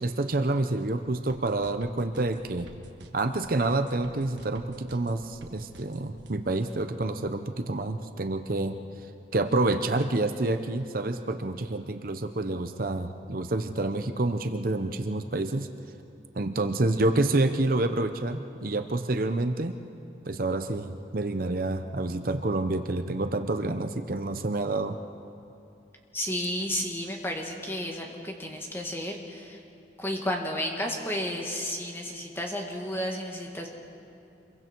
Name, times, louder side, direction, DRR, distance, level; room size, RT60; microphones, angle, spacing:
voice 1, 0.0-2.7 3.1-8.8 9.3-15.7 16.3-19.8 20.3-25.0, right 2 dB, 50° right, 8 dB, 0.7 m, -28 dB
sound 1, 1.3-6.3, right 1 dB, 75° right, 1.5 m, -50 dB
voice 2, 26.1-29.6 30.0-33.7, left 1 dB, 10° left, 1 dB, 1.9 m, -32 dB
27.0 x 22.5 x 4.6 m, 2.7 s
head